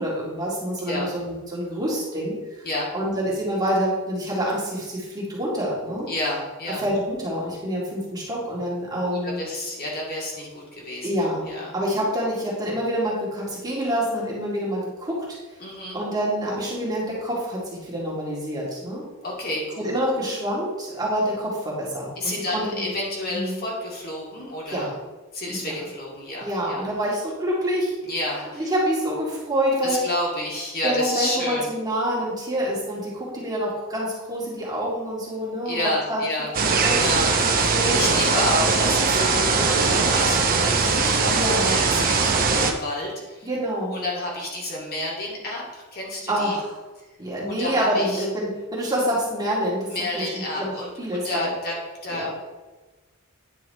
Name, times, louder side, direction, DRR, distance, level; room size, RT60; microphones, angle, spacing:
voice 1, 0.0-2.3 2.9-6.1 6.8-9.4 11.0-15.2 15.9-19.1 19.8-22.9 23.3-23.6 24.7-24.9 25.5-25.7 26.4-28.0 28.6-30.0 30.8-35.8 36.1-36.2 36.6-37.0 37.4-38.4 39.9-40.4 41.3-41.8 43.4-44.0 46.3-46.8 47.2-50.7 51.0-51.5 52.1-52.3, equal, 20° right, -6 dB, 2.2 m, -27 dB
voice 2, 0.8-1.1 2.6-2.9 6.1-6.9 9.0-11.1 11.4-11.7 15.6-16.0 19.2-19.9 20.2-20.3 22.2-24.9 25.3-26.8 28.0-28.7 29.8-31.7 35.7-36.5 36.8-43.5 43.9-46.6 47.4-48.3 49.9-51.7 52.0-52.3, left 1 dB, 45° left, -4 dB, 2.1 m, -30 dB
sound 1, 36.5-42.7, right 4 dB, 40° right, 0.8 m, -20 dB
9.7 x 4.7 x 4.2 m, 1.2 s
head